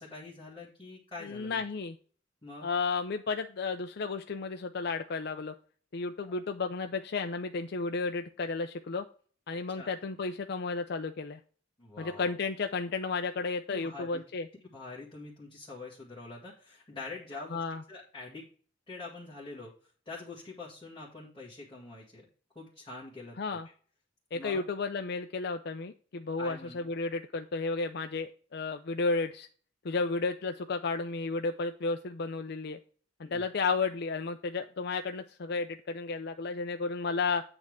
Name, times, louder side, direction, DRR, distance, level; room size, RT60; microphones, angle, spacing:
voice 1, 0.0-1.6 2.4-2.7 6.2-6.4 9.8-9.9 11.8-12.4 13.7-14.2 14.7-17.6 17.9-18.5 18.9-19.7 20.1-22.3 22.6-23.6 24.3-24.6 26.4-26.9 33.2-33.4, left 3 dB, 25° left, -6 dB, 1.9 m, -45 dB
voice 2, 1.2-2.0 2.6-5.5 5.9-9.0 9.5-11.4 12.0-14.5 17.5-17.8 23.4-23.7 24.3-29.5 29.8-32.8 33.2-37.4, left 4 dB, 60° left, 7 dB, 0.5 m, -33 dB
8.8 x 3.5 x 6.3 m, 0.43 s
head